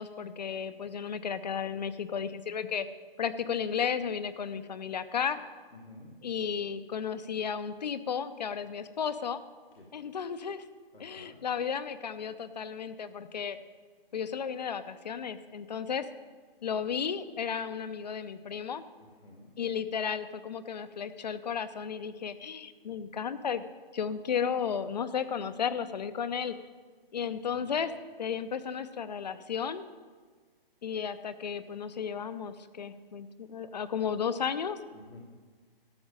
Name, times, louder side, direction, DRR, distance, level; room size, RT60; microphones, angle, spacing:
voice 1, 0.0-2.9 3.2-5.4 6.2-9.4 9.9-10.6 11.0-13.6 14.1-16.1 16.6-18.8 19.6-23.6 23.9-26.6 27.1-27.9 28.2-29.9 30.8-34.8, left 7 dB, 45° left, 12 dB, 0.7 m, -34 dB
voice 2, 10.9-11.4 19.0-19.5 27.5-27.7 34.9-35.2, left 2 dB, 90° left, 1 dB, 2.5 m, -52 dB
13.0 x 6.2 x 8.9 m, 1.5 s
hypercardioid pair, 160°, 30 cm